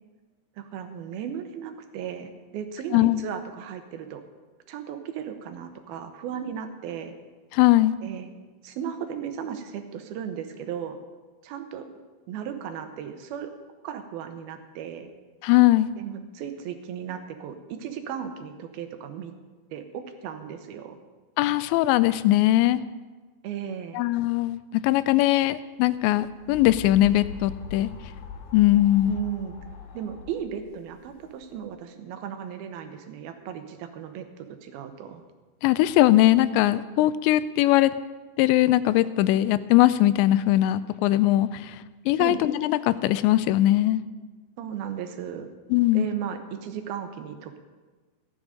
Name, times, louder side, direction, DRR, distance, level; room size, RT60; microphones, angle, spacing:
voice 1, 0.6-4.2 4.7-7.1 8.0-8.3 8.6-11.0 11.4-11.9 12.3-13.5 13.8-15.1 16.0-19.3 19.7-21.0 23.4-24.0 29.1-29.6 29.9-35.2 42.2-42.5 44.6-45.5 45.9-47.6, right 8 dB, 75° right, 7 dB, 2.5 m, -35 dB
voice 2, 7.5-7.9 15.4-15.9 21.4-22.8 23.9-27.9 28.5-29.1 35.6-38.0 38.4-41.8 42.1-44.0 45.7-46.1, left 15 dB, 90° left, 15 dB, 2.8 m, -20 dB
sound 1, 26.0-31.6, left 7 dB, 70° left, 3.0 m, -41 dB
15.0 x 10.5 x 5.2 m, 1.3 s
omnidirectional pair, 5.0 m